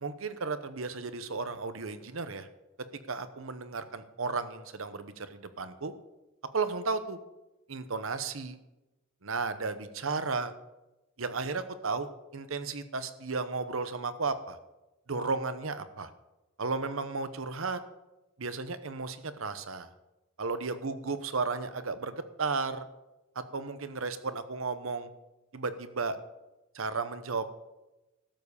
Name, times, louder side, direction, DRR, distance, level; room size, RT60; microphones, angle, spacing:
voice 1, 0.0-2.5 3.1-5.9 6.5-7.2 7.7-8.6 9.2-10.5 11.2-14.6 15.1-16.1 16.6-17.8 18.4-19.9 20.4-22.9 23.3-25.1 25.5-26.2 26.7-27.4, right 4 dB, 70° right, 11 dB, 1.0 m, -34 dB
13.0 x 7.4 x 6.9 m, 1.0 s
head